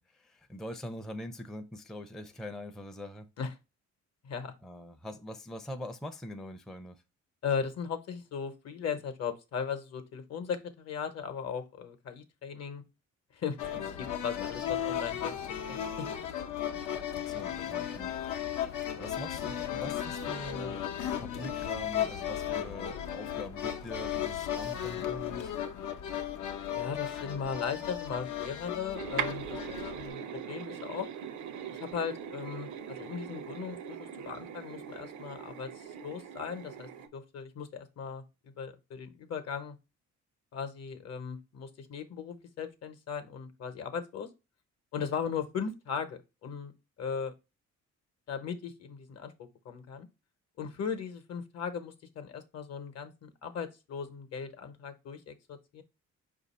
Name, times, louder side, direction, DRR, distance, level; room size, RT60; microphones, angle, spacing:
voice 1, 0.0-3.3 4.6-7.0 17.2-20.9 21.2-25.7, left 1 dB, ahead, 0.4 m, -43 dB
voice 2, 7.4-12.8 13.3-16.1 17.7-17.9 26.7-29.6 29.9-31.1 31.7-39.8 40.5-44.3 44.9-46.7 47.0-47.3 48.3-50.1 50.6-55.8, left 6 dB, 60° left, 0.9 m, -38 dB
sound 1, 13.6-30.1, left 10 dB, 80° left, 0.7 m, -35 dB
sound 2, 28.9-37.1, right 8 dB, 70° right, 0.6 m, -40 dB
4.9 x 2.6 x 4.1 m
cardioid pair, 90°, 30 cm